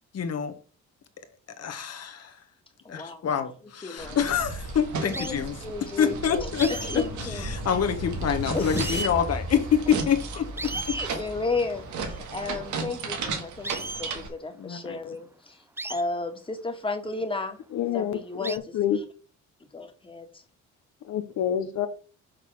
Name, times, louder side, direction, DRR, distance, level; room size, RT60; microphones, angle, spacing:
voice 1, 0.1-0.5 1.6-2.4 2.9-5.6 6.0-10.7 11.1-11.2 14.5-15.1, left 7 dB, 55° left, 1.3 m, -27 dB
voice 2, 2.8-3.3 3.8-4.2 5.1-7.4 8.5-8.9 10.7-15.6 15.9-17.6 17.9-18.6 19.7-20.4, left 3 dB, 15° left, 1.7 m, -33 dB
sound 1, 4.0-14.3, right 4 dB, 80° right, 1.9 m, -35 dB
sound 2, 4.2-4.5 5.1-5.4 6.6-8.2 8.4-8.5 8.8-9.2 10.2-10.3 10.6-11.1 13.6-14.2 15.8-16.0 17.2-17.3 18.4-18.6, right 2 dB, 10° right, 0.3 m, -35 dB
sound 3, 5.7-11.7, left 1 dB, 35° left, 1.6 m, -37 dB
voice 3, 17.7-19.0 21.0-21.9, left 9 dB, 75° left, 0.9 m, -27 dB
6.4 x 4.0 x 6.3 m
cardioid pair, 90°, 30 cm